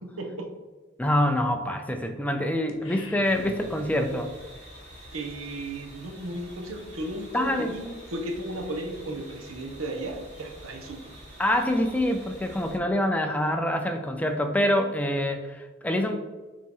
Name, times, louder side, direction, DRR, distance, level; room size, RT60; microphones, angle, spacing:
voice 1, 0.0-0.6 5.1-11.1, right 1 dB, 90° right, 3 dB, 1.0 m, -35 dB
voice 2, 1.0-4.3 7.3-7.7 11.4-16.2, left 1 dB, 5° left, 5 dB, 0.4 m, -25 dB
sound 1, 2.7-4.3, left 3 dB, 75° left, 0.9 m, -45 dB
sound 2, 3.2-12.8, equal, 35° right, 1.7 m, -47 dB
7.0 x 3.2 x 4.3 m, 1.3 s
head